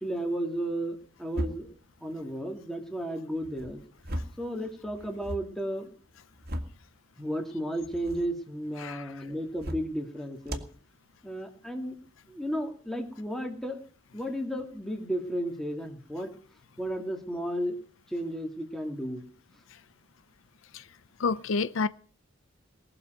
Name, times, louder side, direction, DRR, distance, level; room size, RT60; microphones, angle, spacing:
voice 1, 0.0-3.8 4.4-5.9 7.2-10.6 11.2-12.0 12.3-13.8 14.1-16.3 16.8-17.8 18.1-19.2, equal, ahead, 2.3 m, -33 dB
sound 1, 1.3-1.8 3.4-4.5 4.8-5.5 6.1-6.8 7.8-8.3 9.5-10.0 10.4-10.8, equal, 50° right, 1.9 m, -37 dB
voice 2, 21.2-21.9, left 4 dB, 80° left, 0.6 m, -28 dB
19.5 x 6.9 x 9.1 m
head